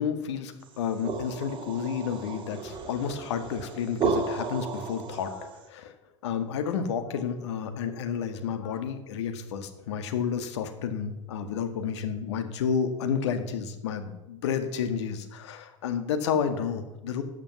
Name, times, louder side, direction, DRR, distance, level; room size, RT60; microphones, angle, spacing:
voice 1, 0.0-5.9 6.2-17.2, left 7 dB, 60° left, 8 dB, 1.8 m, -31 dB
sound 1, 0.7-5.6, right 4 dB, 30° right, 2.5 m, -33 dB
14.5 x 8.6 x 7.0 m, 0.94 s
figure-of-eight pair, 75°, 16 cm